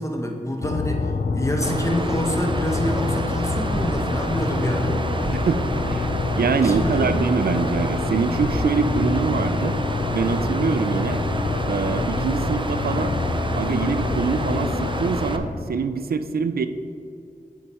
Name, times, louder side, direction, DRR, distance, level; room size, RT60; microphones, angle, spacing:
voice 1, 0.0-5.0 6.6-7.1, equal, 20° left, 1 dB, 1.2 m, -27 dB
sound 1, 0.6-15.8, left 3 dB, 75° left, 0.5 m, -26 dB
Water, 1.6-15.4, right 2 dB, 35° right, 0.7 m, -30 dB
sound 2, 3.7-4.0 4.5-4.6 5.2-5.5 6.1-6.2 6.7-6.9 7.3-7.4 7.7-7.8 8.4-9.0, right 1 dB, 65° right, 2.2 m, -32 dB
voice 2, 5.3-6.1 6.3-9.8 10.1-11.2 11.7-13.2 13.6-16.7, right 5 dB, 85° right, 10 dB, 0.5 m, -24 dB
9.6 x 9.2 x 3.0 m, 2.4 s
cardioid pair, 40°, 15 cm